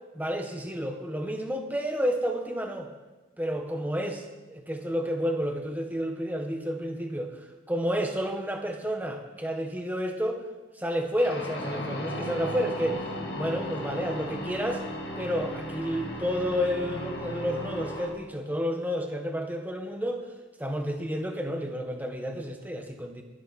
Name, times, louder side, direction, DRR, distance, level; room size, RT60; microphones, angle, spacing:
voice 1, 0.1-2.9 3.4-10.4 10.7-13.1 13.3-14.8 15.2-20.3 20.6-23.2, equal, 10° right, 4 dB, 1.4 m, -30 dB
sound 1, 11.2-18.1, equal, 55° left, 2.4 m, -36 dB
22.0 x 11.5 x 4.3 m, 1.2 s
head